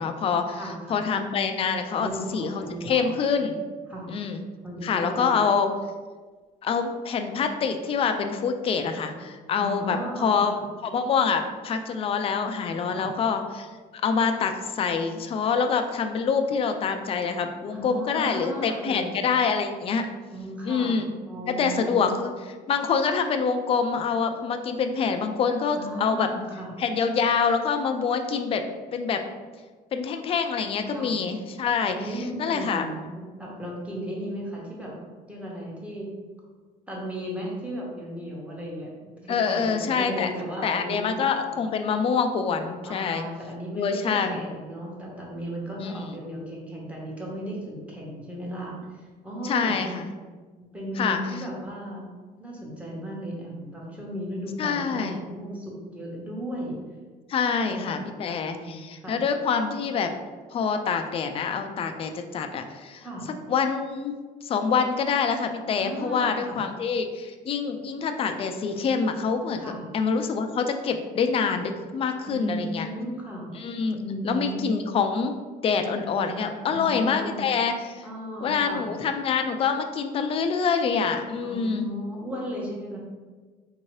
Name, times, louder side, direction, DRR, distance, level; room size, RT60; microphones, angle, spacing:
voice 1, 0.0-0.6 0.9-3.6 4.1-4.4 4.8-5.7 6.6-10.5 10.8-13.7 14.0-20.1 20.6-21.1 21.5-22.3 22.7-26.3 26.8-28.6 28.9-29.2 29.9-32.9 39.3-40.3 40.6-43.2 43.7-44.4 45.8-46.0 49.4-50.1 51.0-51.2 54.6-55.2 57.3-60.1 60.5-63.1 63.5-64.1 64.4-69.6 69.9-72.9 73.6-74.0 74.2-75.3 75.6-78.0 78.4-81.9, left 5 dB, 35° left, 6 dB, 0.3 m, -26 dB
voice 2, 0.5-1.0 1.9-3.1 3.9-4.1 4.6-5.4 9.6-10.6 12.9-13.1 17.7-19.1 20.3-21.0 21.3-22.1 25.7-26.7 30.9-31.1 31.9-34.9 35.3-36.1 36.9-38.9 39.2-41.1 41.5-41.6 42.8-49.8 50.6-52.0 52.4-56.8 57.5-58.1 58.4-59.1 63.0-63.3 65.7-66.6 69.6-69.8 72.3-73.5 74.0-74.7 76.7-77.5 78.0-78.9 81.4-83.0, equal, 10° right, -4 dB, 1.0 m, -35 dB
3.6 x 2.8 x 3.1 m, 1.4 s
cardioid pair, 110°, 17 cm